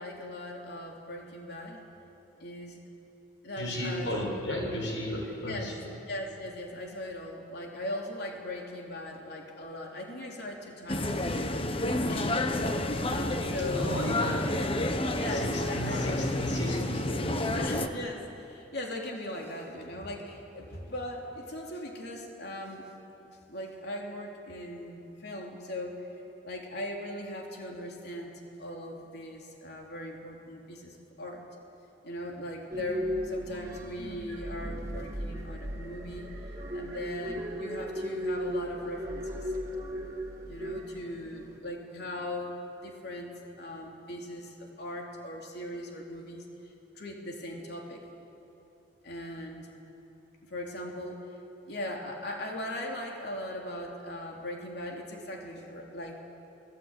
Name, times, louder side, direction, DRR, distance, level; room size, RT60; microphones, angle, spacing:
voice 1, 0.0-1.8 2.4-2.8 3.4-4.1 5.4-5.7 6.0-11.2 12.1-12.5 13.1-13.9 15.1-16.1 17.5-22.9 23.5-26.1 26.4-28.3 28.6-31.4 32.0-36.3 36.7-39.5 40.5-46.5 47.0-48.0 49.0-49.7 50.4-51.2 51.7-56.2, left 1 dB, 60° left, 0 dB, 3.5 m, -39 dB
voice 2, 3.5-5.9 13.7-14.9 15.3-17.5, equal, 80° left, -1 dB, 7.6 m, -34 dB
sound 1, 10.9-17.9, left 1 dB, 30° left, 1.2 m, -30 dB
sound 2, 32.7-41.6, equal, 20° right, 2.8 m, -36 dB
29.0 x 21.0 x 9.2 m, 2.9 s
head